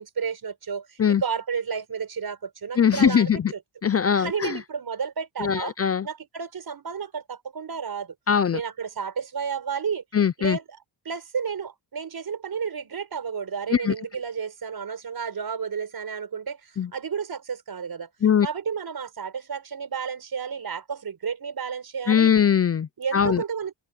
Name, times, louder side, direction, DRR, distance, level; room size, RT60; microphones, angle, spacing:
voice 1, 0.0-3.6 4.1-5.7 6.0-8.1 8.5-10.0 10.4-10.6 11.0-18.1 18.4-22.3 23.0-23.7, right 6 dB, 60° right, 5.7 m, -32 dB
voice 2, 2.8-3.5 3.8-4.6 5.4-6.1 8.3-8.6 10.1-10.6 13.7-13.9 16.8-16.9 18.2-18.5 22.1-23.4, left 8 dB, 35° left, 0.5 m, -21 dB
wide cardioid pair, 110°, 42 cm